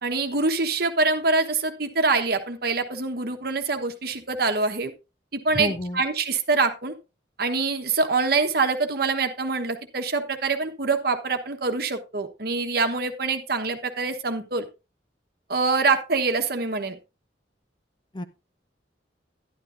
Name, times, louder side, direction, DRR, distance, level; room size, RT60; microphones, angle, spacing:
voice 1, 0.0-4.9 5.3-6.9 7.4-14.6 15.5-17.0, right 3 dB, 55° right, 7 dB, 1.2 m, -25 dB
voice 2, 5.5-6.0 18.1-18.2, equal, 25° left, 10 dB, 0.6 m, -29 dB
11.5 x 11.0 x 2.6 m, 0.28 s
head